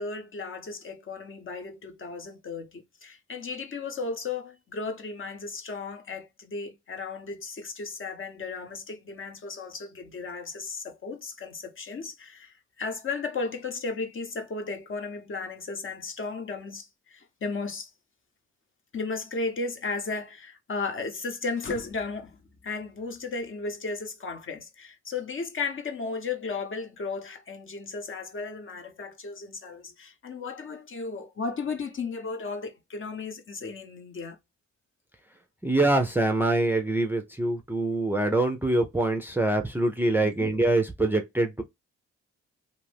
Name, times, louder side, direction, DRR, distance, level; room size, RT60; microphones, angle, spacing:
voice 1, 0.0-17.9 18.9-22.4 22.6-34.4 40.2-40.5, left 4 dB, 45° left, 0.9 m, -35 dB
voice 2, 35.6-41.6, right 2 dB, 5° right, 0.5 m, -24 dB
2.6 x 2.5 x 3.3 m
cardioid pair, 85°, 29 cm